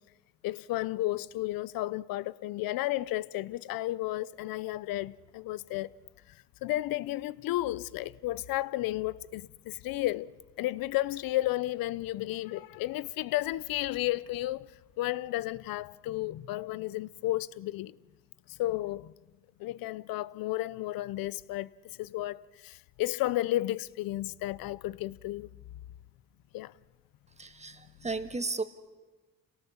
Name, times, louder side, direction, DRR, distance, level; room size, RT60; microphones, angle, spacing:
voice 1, 0.4-5.9 6.3-10.3 10.6-14.7 15.0-17.9 18.5-19.1 19.6-25.6 26.5-26.7, left 16 dB, 85° left, 0.7 m, -33 dB
voice 2, 27.4-28.6, right 3 dB, 20° right, 1.7 m, -34 dB
28.5 x 18.0 x 7.2 m
cardioid pair, 85°, 34 cm